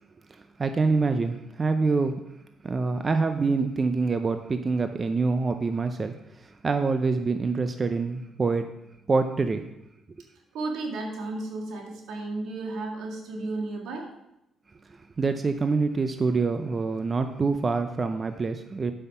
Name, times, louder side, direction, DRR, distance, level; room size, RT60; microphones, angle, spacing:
voice 1, 0.3-2.2 2.6-8.7 9.1-9.7 15.2-18.9, right 4 dB, 35° right, 8 dB, 0.6 m, -26 dB
voice 2, 10.5-14.1, right 2 dB, 85° right, 1 dB, 1.9 m, -33 dB
8.0 x 5.7 x 5.6 m, 0.85 s
cardioid pair, 90°, 0 cm